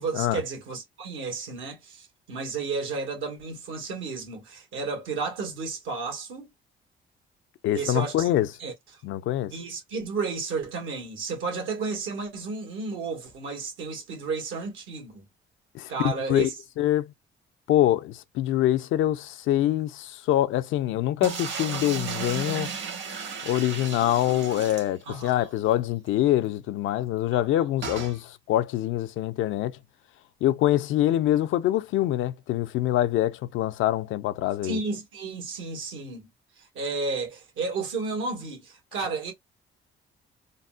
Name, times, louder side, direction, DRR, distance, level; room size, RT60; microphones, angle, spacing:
voice 1, 0.0-6.5 7.7-8.3 8.6-9.0 9.5-15.2 15.9-16.5 25.1-25.5 27.3-27.5 34.6-36.3 36.6-39.3, right 4 dB, 85° right, 1.5 m, -32 dB
voice 2, 7.6-8.5 9.0-9.5 15.7-16.5 16.8-17.1 17.7-22.7 23.4-29.8 30.4-34.8 39.0-39.1, left 13 dB, 85° left, 0.4 m, -25 dB
sound 1, 21.2-25.4 25.7-25.8 26.1-26.2 27.8-28.2, right 6 dB, 70° right, 1.4 m, -34 dB
4.0 x 2.0 x 2.3 m
cardioid pair, 90°, 20 cm